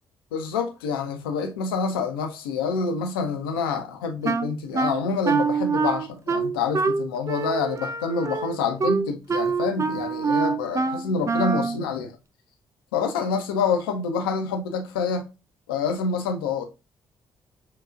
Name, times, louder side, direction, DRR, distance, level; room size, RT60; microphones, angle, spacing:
voice 1, 0.3-12.1 12.9-15.2 15.7-16.6, left 5 dB, 75° left, 0.6 m, -27 dB
Wind instrument woodwind instrument, 4.2-11.8, right 4 dB, 25° right, 0.4 m, -25 dB
5.7 x 2.4 x 2.3 m
figure-of-eight pair, 40°, 12 cm